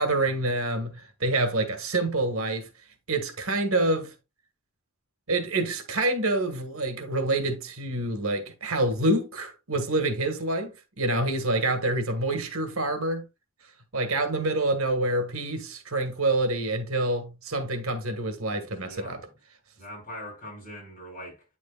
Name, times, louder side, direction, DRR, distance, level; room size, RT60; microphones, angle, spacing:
voice 1, 0.0-2.7 3.1-4.1 5.3-10.7 11.0-13.2 13.9-19.2, right 2 dB, 70° right, 1.5 m, -27 dB
voice 2, 18.5-19.3 19.7-21.4, equal, 40° left, 5.0 m, -42 dB
9.0 x 6.3 x 2.3 m
head